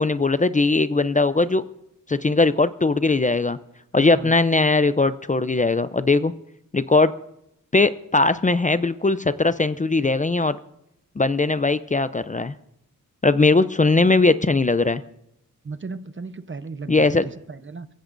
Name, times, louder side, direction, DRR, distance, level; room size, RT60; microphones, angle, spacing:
voice 1, 0.0-1.6 2.1-3.6 3.9-6.3 6.7-7.1 7.7-10.6 11.2-12.5 13.2-15.0 16.9-17.2, left 3 dB, 25° left, 13 dB, 0.5 m, -19 dB
voice 2, 4.0-4.3 15.6-17.2 17.5-17.9, right 4 dB, 35° right, 12 dB, 0.9 m, -35 dB
23.0 x 16.5 x 2.6 m, 0.83 s
wide cardioid pair, 75°, 32 cm